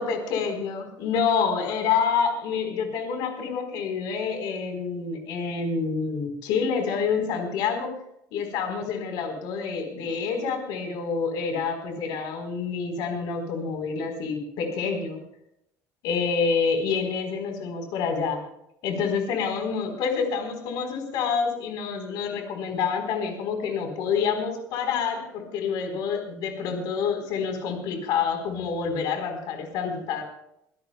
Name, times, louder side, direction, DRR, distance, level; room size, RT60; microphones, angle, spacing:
voice 1, 0.0-7.9 8.3-15.2 16.0-18.4 18.8-30.2, left 6 dB, 85° left, 5 dB, 4.0 m, -27 dB
25.5 x 17.0 x 2.3 m, 0.77 s
cardioid pair, 150°, 7 cm